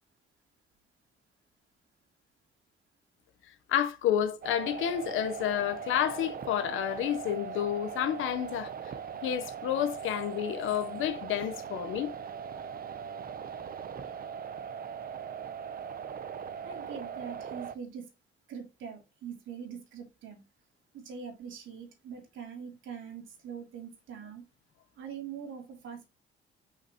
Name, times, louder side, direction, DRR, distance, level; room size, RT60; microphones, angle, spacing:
voice 1, 3.7-8.7 9.2-12.1, left 10 dB, 85° left, 1.1 m, -30 dB
sound 1, 4.4-17.8, right 7 dB, 50° right, 0.8 m, -40 dB
voice 2, 16.6-18.1 18.5-20.4 20.9-24.4 25.0-26.1, right 7 dB, 80° right, 3.0 m, -43 dB
5.9 x 5.8 x 3.1 m
cardioid pair, 90°, 20 cm